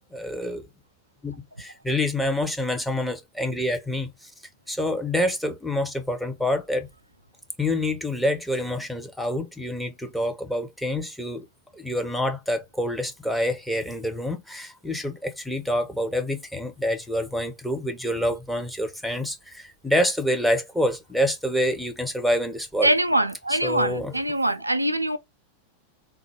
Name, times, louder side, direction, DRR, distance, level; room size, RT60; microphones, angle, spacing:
voice 1, 0.1-0.6 1.2-1.3 1.6-4.1 4.7-6.9 7.6-11.5 11.7-22.9 23.5-24.1, left 1 dB, ahead, 0.7 m, -27 dB
voice 2, 22.8-25.2, right 1 dB, 85° right, 0.3 m, -23 dB
3.5 x 2.1 x 3.2 m
figure-of-eight pair, 90°, 0 cm